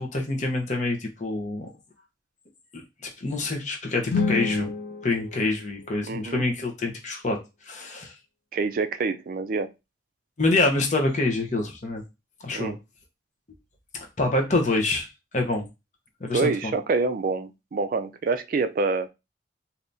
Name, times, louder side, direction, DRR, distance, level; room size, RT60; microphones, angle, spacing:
voice 1, 0.0-1.7 3.0-4.7 5.0-7.4 7.7-8.1 10.4-12.0 12.4-12.7 13.9-15.1 15.3-15.6 16.2-16.7, left 2 dB, 40° left, 0.8 m, -26 dB
sound 1, 4.1-6.3, left 4 dB, 70° left, 0.5 m, -30 dB
voice 2, 6.1-6.4 8.5-9.7 12.5-12.8 16.3-19.1, right 4 dB, 50° right, 0.3 m, -26 dB
3.4 x 2.7 x 2.6 m
head